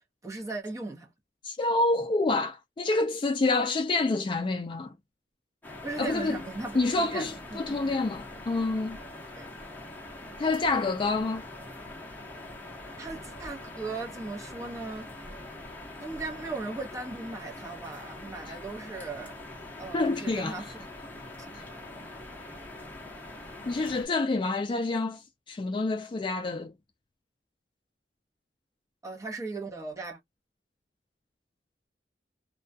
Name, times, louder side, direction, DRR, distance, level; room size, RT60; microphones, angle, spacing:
voice 1, 0.2-1.1 5.8-8.1 9.3-9.5 13.0-15.3 16.0-19.3 19.8-20.9 29.0-30.2, right 3 dB, 20° right, 0.8 m, -38 dB
voice 2, 1.4-4.9 6.0-6.4 6.7-9.0 10.4-11.4 19.9-20.5 21.5-21.6 23.7-25.2 25.5-26.7, left 3 dB, 30° left, 0.3 m, -27 dB
sound 1, 5.6-24.1, left 2 dB, 10° left, 0.8 m, -43 dB
2.3 x 2.1 x 2.5 m
head